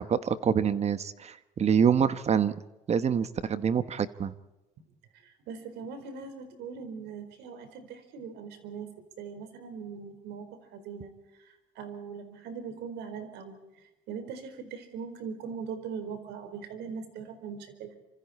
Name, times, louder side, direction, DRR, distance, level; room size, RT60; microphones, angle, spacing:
voice 1, 0.0-2.6 2.9-4.3, right 7 dB, 40° right, 13 dB, 1.1 m, -26 dB
voice 2, 5.1-8.9 9.2-11.1 11.4-13.6 14.1-18.0, right 6 dB, 85° right, 8 dB, 4.5 m, -40 dB
28.0 x 25.5 x 4.3 m, 1.0 s
cardioid pair, 110°, 17 cm